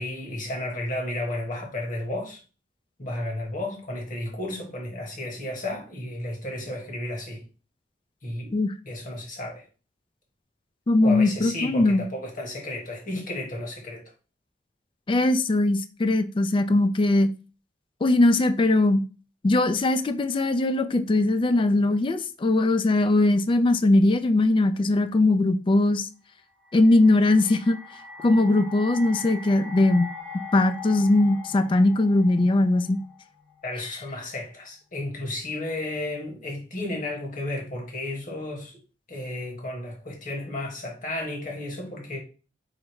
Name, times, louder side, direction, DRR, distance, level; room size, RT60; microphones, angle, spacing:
voice 1, 0.0-2.4 3.0-7.5 8.2-8.5 8.9-9.6 11.0-14.0 33.6-38.8 39.1-42.2, left 1 dB, 45° left, 1.4 m, -33 dB
voice 2, 10.9-12.1 15.1-17.3 18.0-19.0 19.4-26.1 26.7-27.8 28.2-30.1 30.5-33.0, left 2 dB, 30° left, 0.3 m, -20 dB
sound 1, 26.7-33.8, left 4 dB, ahead, 0.8 m, -41 dB
4.9 x 2.1 x 4.6 m
head